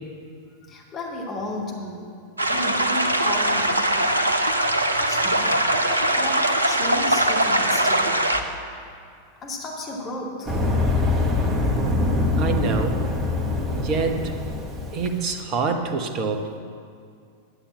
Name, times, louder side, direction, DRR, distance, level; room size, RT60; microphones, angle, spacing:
voice 1, 0.6-2.1 2.5-3.9 4.9-8.2 9.4-10.5, left 1 dB, 30° left, -2 dB, 2.5 m, -33 dB
sound 1, 2.4-8.4, right 1 dB, 80° right, 0.8 m, -21 dB
sound 2, 10.5-15.1, left 2 dB, 20° right, 1.5 m, -24 dB
voice 2, 12.4-13.0 13.7-14.3 14.9-16.5, right 4 dB, 35° right, 6 dB, 1.2 m, -26 dB
11.5 x 8.8 x 7.3 m, 2.3 s
figure-of-eight pair, 90°, 0 cm